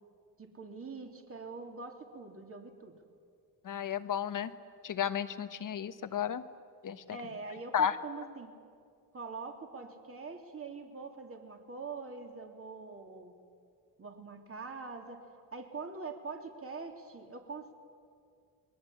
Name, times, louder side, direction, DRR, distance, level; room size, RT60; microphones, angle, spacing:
voice 1, 0.4-3.0 7.1-8.5 9.1-13.3 14.0-15.2 15.5-17.7, right 4 dB, 35° right, 4 dB, 3.3 m, -44 dB
voice 2, 3.6-4.5 4.8-6.4 6.8-7.2 7.7-8.0, left 8 dB, 50° left, 11 dB, 1.4 m, -33 dB
30.0 x 21.5 x 8.7 m, 2.2 s
cardioid pair, 95°, 40 cm